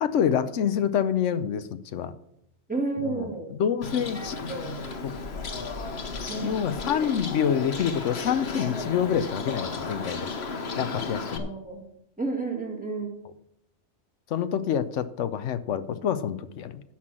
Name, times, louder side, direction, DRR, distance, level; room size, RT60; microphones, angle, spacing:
voice 1, 0.0-2.1 3.1-3.3 3.5-4.4 5.0-5.1 6.4-10.3 10.8-11.4 14.3-16.8, left 8 dB, 85° left, 13 dB, 1.0 m, -27 dB
voice 2, 2.7-3.5 4.1-4.8 6.3-6.6 11.4-11.9 12.2-13.2, right 3 dB, 5° right, 0 dB, 2.0 m, -31 dB
Bird, 3.8-11.4, left 4 dB, 60° left, 1.4 m, -34 dB
10.5 x 5.9 x 7.4 m, 0.76 s
omnidirectional pair, 1.2 m